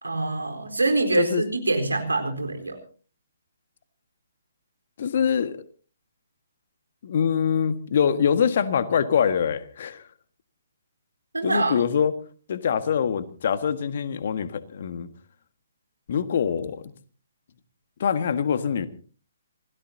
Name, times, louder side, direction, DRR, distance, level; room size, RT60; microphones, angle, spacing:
voice 1, 0.0-2.8 11.3-11.9, right 2 dB, 80° right, 4 dB, 4.1 m, -25 dB
voice 2, 5.0-5.6 7.0-10.0 11.4-12.1 12.5-15.1 16.1-16.8 18.0-18.9, left 7 dB, 50° left, 11 dB, 1.7 m, -24 dB
27.5 x 17.5 x 2.8 m, 0.38 s
figure-of-eight pair, 130°, 0 cm